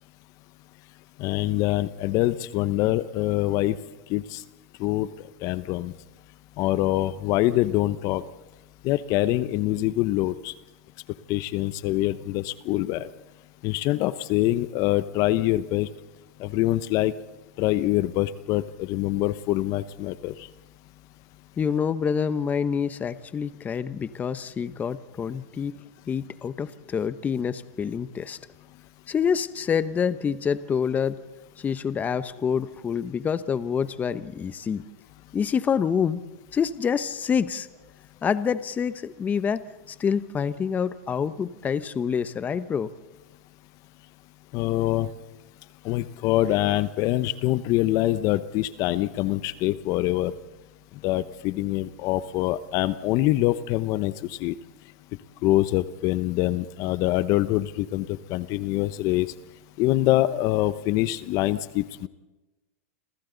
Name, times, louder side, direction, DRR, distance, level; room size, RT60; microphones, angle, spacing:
voice 1, 1.2-3.8 4.1-4.4 4.8-5.1 5.4-5.9 6.6-8.2 8.8-10.5 11.3-13.1 13.6-15.9 16.4-17.1 17.6-20.3 44.5-45.1 45.8-50.3 51.0-54.6 55.4-59.3 59.8-62.1, left 16 dB, 45° left, 14 dB, 1.0 m, -24 dB
voice 2, 21.6-25.8 26.1-28.4 29.1-31.2 31.6-34.8 35.3-36.2 36.5-37.7 38.2-42.9, left 7 dB, 20° left, 13 dB, 1.0 m, -27 dB
29.5 x 27.0 x 4.0 m, 1.1 s
hypercardioid pair, 125°, 8 cm